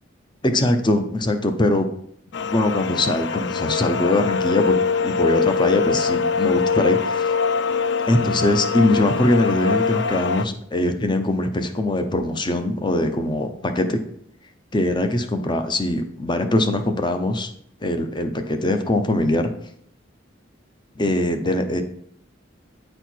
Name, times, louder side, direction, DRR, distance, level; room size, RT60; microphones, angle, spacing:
voice 1, 0.4-1.9 2.4-4.8 5.0-7.3 8.1-14.0 14.7-17.5 17.8-19.5 21.0-21.8, left 1 dB, 25° left, 7 dB, 0.7 m, -22 dB
sound 1, 2.3-10.5, left 5 dB, 60° left, 0.4 m, -23 dB
9.0 x 4.4 x 4.5 m, 0.68 s
head